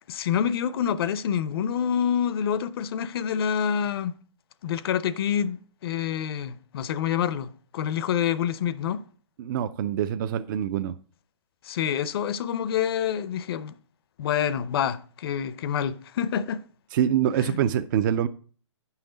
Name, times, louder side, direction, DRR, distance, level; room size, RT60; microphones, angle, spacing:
voice 1, 0.1-4.1 4.6-9.0 11.6-13.8 14.2-16.6 17.4-17.6, left 8 dB, 50° left, 0.6 m, -27 dB
voice 2, 9.4-10.9 16.9-18.3, right 10 dB, 40° right, 0.4 m, -25 dB
9.5 x 5.7 x 3.9 m
hypercardioid pair, 140°, 16 cm